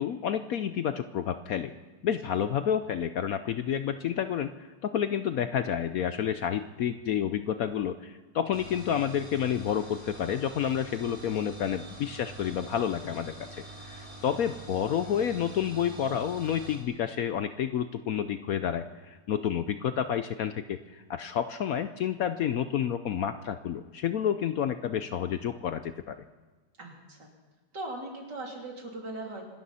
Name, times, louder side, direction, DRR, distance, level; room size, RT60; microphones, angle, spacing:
voice 1, 0.0-1.7 2.0-26.2, left 9 dB, 65° left, 10 dB, 0.9 m, -30 dB
sound 1, 8.5-16.8, right 2 dB, 20° right, 2.8 m, -45 dB
voice 2, 26.8-27.3 27.7-29.5, right 2 dB, 70° right, 0 dB, 3.8 m, -39 dB
26.0 x 13.0 x 4.2 m, 1.3 s
omnidirectional pair, 1.9 m